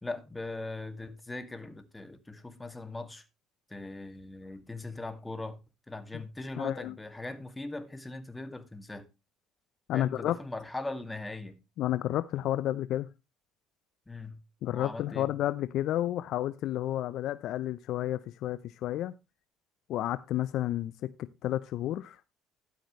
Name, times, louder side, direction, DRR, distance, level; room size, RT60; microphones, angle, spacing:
voice 1, 0.0-3.2 3.7-5.6 5.9-9.1 9.9-11.6 14.1-14.4 14.7-15.3, left 2 dB, 15° left, 2.2 m, -40 dB
voice 2, 6.6-6.9 9.9-10.3 11.8-13.1 14.6-19.1 19.9-21.1 21.4-22.2, left 13 dB, 65° left, 0.6 m, -31 dB
12.5 x 8.7 x 3.2 m
supercardioid pair, 70°, 0 cm